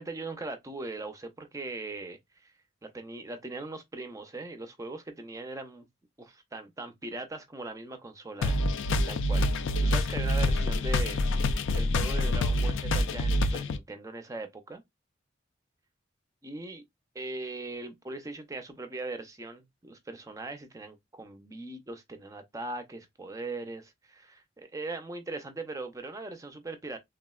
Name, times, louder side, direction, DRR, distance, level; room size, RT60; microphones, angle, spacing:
voice 1, 0.0-2.5 2.8-5.9 6.2-8.6 8.9-9.5 9.8-14.8 16.4-16.8 17.1-27.0, right 2 dB, 15° right, 0.4 m, -40 dB
sound 1, 8.4-13.8, left 1 dB, 85° left, 0.4 m, -26 dB
3.4 x 2.0 x 2.3 m
head